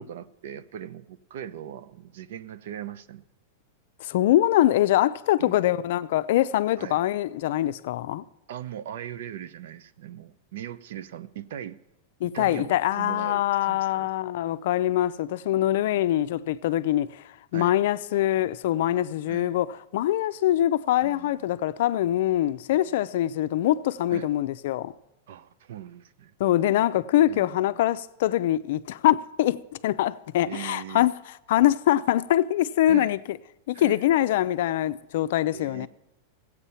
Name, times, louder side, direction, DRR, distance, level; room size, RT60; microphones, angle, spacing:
voice 1, 0.0-3.2 5.4-5.6 6.8-7.0 8.5-11.8 12.3-14.1 15.8-16.1 17.5-17.8 19.3-19.6 21.0-21.4 22.7-22.9 24.1-24.3 25.3-26.3 27.3-27.8 30.5-31.1 32.9-33.2 33.7-34.0 35.5-35.9, right 10 dB, 70° right, 0.7 m, -40 dB
voice 2, 4.0-8.2 12.2-17.2 17.5-24.9 26.4-31.1 31.5-33.4 33.7-35.9, left 13 dB, 65° left, 0.5 m, -24 dB
16.0 x 8.2 x 5.6 m
supercardioid pair, 150°, 0 cm